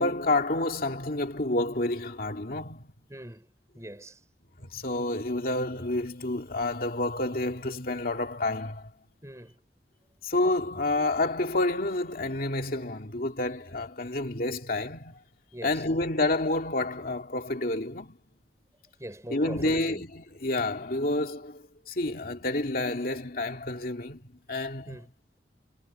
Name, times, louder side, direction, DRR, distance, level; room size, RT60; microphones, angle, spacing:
voice 1, 0.0-2.9 4.6-8.9 10.2-15.1 15.6-18.1 19.3-25.0, left 2 dB, 55° left, 2.5 m, -29 dB
voice 2, 3.1-3.5 3.8-4.1 9.2-9.5 15.5-15.7 19.0-20.0 24.9-25.1, right 1 dB, 15° right, 5.7 m, -42 dB
head